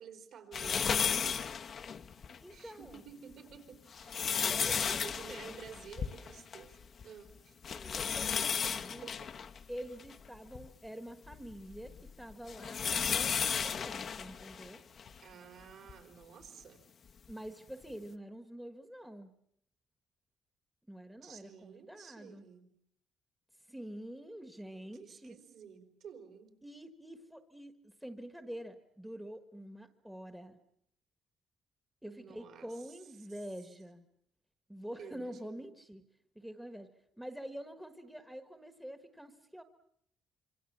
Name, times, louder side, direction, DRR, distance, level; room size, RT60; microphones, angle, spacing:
voice 1, 0.0-1.4 2.5-4.3 4.6-7.6 9.0-9.3 15.2-16.8 21.2-22.7 24.7-26.6 32.0-33.0 35.0-35.6, right 7 dB, 65° right, 6 dB, 4.2 m, -52 dB
sound 1, 0.5-2.4 2.9-3.0 3.7-6.7 7.0-7.1 7.6-10.7 11.3-15.2 15.9-16.0 17.3-17.4, left 7 dB, 45° left, 1.0 m, -34 dB
voice 2, 2.4-3.0 4.4-5.9 7.7-9.1 9.7-14.8 17.3-19.3 20.9-22.4 23.7-25.4 26.6-30.6 32.0-34.0 34.7-36.1 36.3-36.9 37.2-39.6, equal, 5° right, 8 dB, 1.4 m, -47 dB
26.5 x 25.0 x 7.4 m, 0.71 s
cardioid pair, 145°, 0 cm